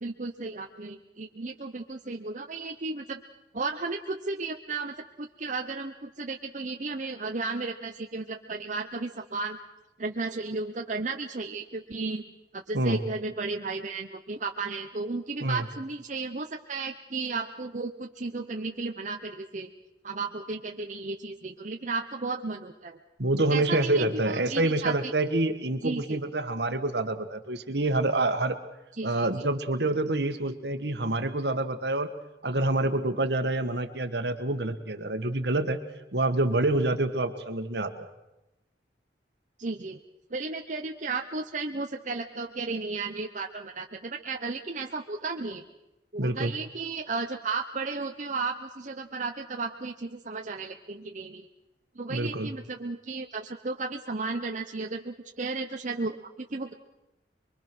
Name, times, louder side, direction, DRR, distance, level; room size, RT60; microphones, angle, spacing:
voice 1, 0.0-3.2 3.5-9.6 10.0-12.2 12.5-19.7 20.0-23.0 23.5-25.1 25.8-26.2 29.0-29.3 39.6-40.0 40.3-45.6 46.1-51.5 51.9-56.7, right 3 dB, 45° right, 3 dB, 1.0 m, -34 dB
voice 2, 23.2-28.6 29.0-32.1 32.4-35.8 36.1-38.1 46.2-46.5 52.1-52.5, right 2 dB, 70° right, 9 dB, 1.8 m, -27 dB
24.5 x 23.5 x 6.2 m, 0.95 s
head